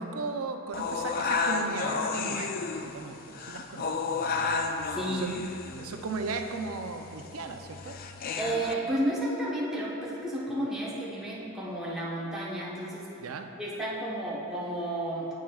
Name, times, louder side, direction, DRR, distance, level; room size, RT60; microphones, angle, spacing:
voice 1, 0.0-4.2 5.2-5.4 5.7-8.0 13.2-13.5, right 4 dB, 75° right, 5 dB, 0.5 m, -36 dB
sound 1, 0.7-8.7, left 4 dB, 40° left, 0.3 m, -32 dB
voice 2, 4.9-5.3 8.4-13.1 13.6-15.3, right 1 dB, ahead, -8 dB, 1.0 m, -32 dB
9.4 x 8.5 x 2.4 m, 2.8 s
head